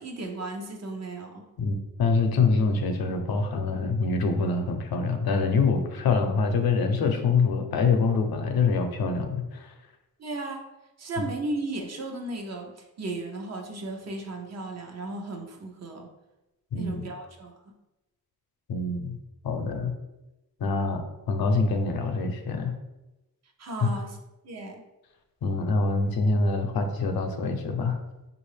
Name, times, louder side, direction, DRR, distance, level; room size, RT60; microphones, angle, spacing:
voice 1, 0.0-1.5 10.2-10.6 11.0-16.1 16.8-17.5 23.6-24.2 24.4-24.8, right 2 dB, 45° right, 2 dB, 0.7 m, -35 dB
voice 2, 1.6-9.7 11.2-11.3 16.7-17.1 18.7-19.2 19.4-20.0 20.6-22.8 23.8-23.9 25.4-28.0, left 4 dB, 80° left, 5 dB, 0.7 m, -25 dB
5.4 x 2.5 x 3.2 m, 1.0 s
wide cardioid pair, 165°, 36 cm